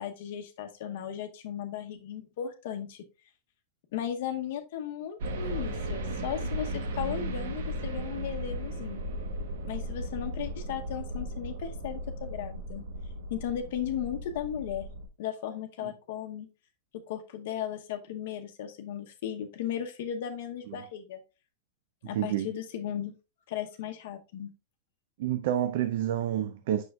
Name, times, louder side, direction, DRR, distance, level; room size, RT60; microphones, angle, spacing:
voice 1, 0.0-3.0 3.9-9.1 9.6-12.8 13.3-14.9 15.2-16.5 16.9-21.2 22.0-23.1 23.5-24.5, left 9 dB, 60° left, 0.8 m, -36 dB
sound 1, 5.2-15.1, right 1 dB, 75° right, 1.1 m, -36 dB
voice 2, 22.1-22.5 25.2-26.8, right 11 dB, 60° right, 0.5 m, -29 dB
7.2 x 6.1 x 2.3 m
supercardioid pair, 165°, 0 cm